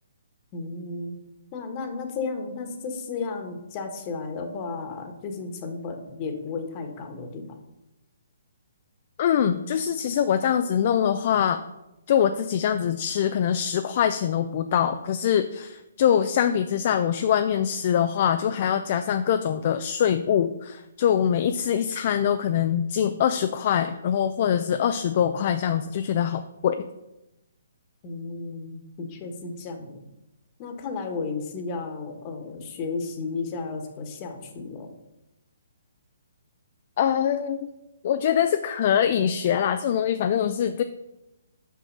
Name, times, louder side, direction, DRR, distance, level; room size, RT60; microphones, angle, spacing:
voice 1, 0.5-1.2 1.5-7.4 28.0-30.0 30.6-34.9, left 4 dB, 30° left, 4 dB, 1.3 m, -33 dB
voice 2, 9.2-11.6 12.1-26.9 37.0-37.7 38.0-40.8, left 9 dB, 45° left, 8 dB, 0.4 m, -23 dB
6.0 x 5.5 x 5.5 m, 0.92 s
hypercardioid pair, 145°, 0 cm